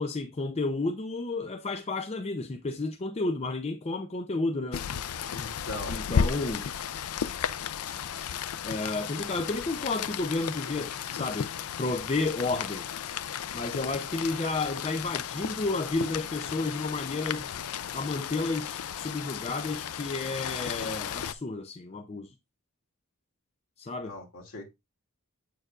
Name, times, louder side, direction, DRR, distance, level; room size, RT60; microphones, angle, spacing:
voice 1, 0.0-4.8 5.9-6.7 8.6-11.5 11.8-12.9 13.5-17.5 17.9-22.3 23.8-24.2, left 3 dB, 30° left, 0.5 m, -31 dB
Rain, 4.7-21.3, left 7 dB, 80° left, 0.5 m, -34 dB
voice 2, 5.3-6.0 24.0-24.7, left 1 dB, 65° left, 2.3 m, -40 dB
7.8 x 6.6 x 2.4 m
head